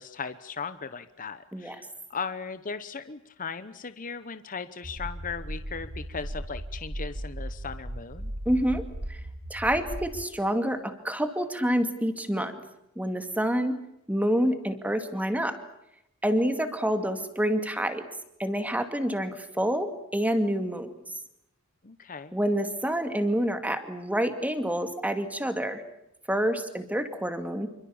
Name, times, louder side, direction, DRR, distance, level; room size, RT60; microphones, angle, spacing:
voice 1, 0.0-8.3 21.8-22.3, left 5 dB, 40° left, 12 dB, 1.0 m, -37 dB
sound 1, 4.8-10.2, right 1 dB, 70° right, 2.2 m, -37 dB
voice 2, 8.5-9.2 9.5-12.7 13.0-13.8 14.1-15.6 16.2-18.1 18.4-20.9 22.3-25.8 26.3-27.7, equal, 5° right, 8 dB, 2.3 m, -27 dB
27.5 x 25.0 x 7.2 m, 0.81 s
head